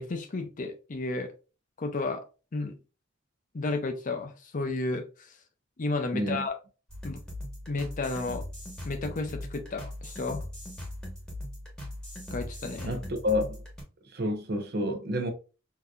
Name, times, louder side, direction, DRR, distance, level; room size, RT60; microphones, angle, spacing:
voice 1, 0.0-1.3 1.8-2.2 2.5-2.8 3.5-5.0 5.8-6.5 7.0-7.2 7.7-8.4 8.8-10.4 12.3-12.9, left 3 dB, 40° left, 0.5 m, -32 dB
voice 2, 6.1-6.5 12.8-13.6 14.1-15.3, left 1 dB, 55° right, 0.7 m, -29 dB
sound 1, 6.9-13.8, left 1 dB, 5° left, 1.1 m, -40 dB
3.8 x 2.7 x 2.3 m
head